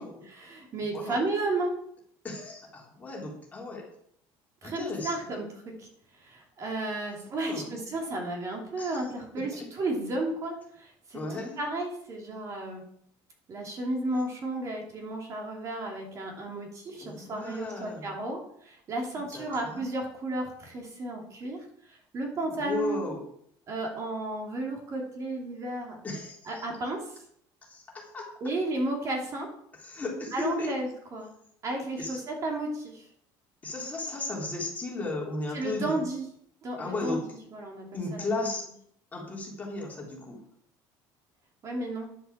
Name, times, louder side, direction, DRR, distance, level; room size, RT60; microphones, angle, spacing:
voice 1, 0.2-1.8 4.6-5.5 5.8-12.8 13.5-23.1 23.7-26.0 26.4-27.2 28.4-29.5 30.3-31.3 31.6-33.1 35.5-36.2 36.6-38.4 41.6-42.1, right 2 dB, 35° right, 1 dB, 3.0 m, -33 dB
voice 2, 2.2-3.9 4.6-5.1 7.4-7.7 8.8-9.0 9.6-9.7 11.1-11.6 16.9-18.2 19.3-19.8 22.5-23.2 26.0-26.6 27.7-28.3 29.8-30.7 32.0-32.2 33.6-36.0 36.8-37.2 37.9-38.6 39.1-40.4, left 2 dB, 15° left, -2 dB, 3.5 m, -35 dB
10.5 x 7.8 x 7.3 m, 0.68 s
cardioid pair, 155°, 9 cm